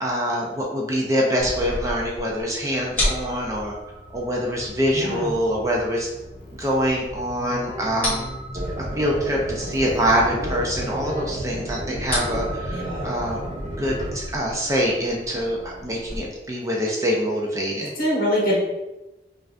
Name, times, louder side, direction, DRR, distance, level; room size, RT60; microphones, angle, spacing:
voice 1, 0.0-3.7 4.1-6.1 6.6-8.3 8.8-13.4 13.8-17.9, equal, 20° right, -2 dB, 0.4 m, -25 dB
sound 1, 1.4-16.2, left 1 dB, 10° left, 1.2 m, -34 dB
Keyboard (musical), 4.0-12.3, equal, 80° left, 0.9 m, -40 dB
voice 2, 4.9-5.3 12.7-13.0 18.0-18.6, equal, 55° left, -5 dB, 1.4 m, -23 dB
sound 2, 8.5-14.1, equal, 45° right, 1.1 m, -31 dB
5.4 x 2.5 x 2.5 m, 1.0 s
head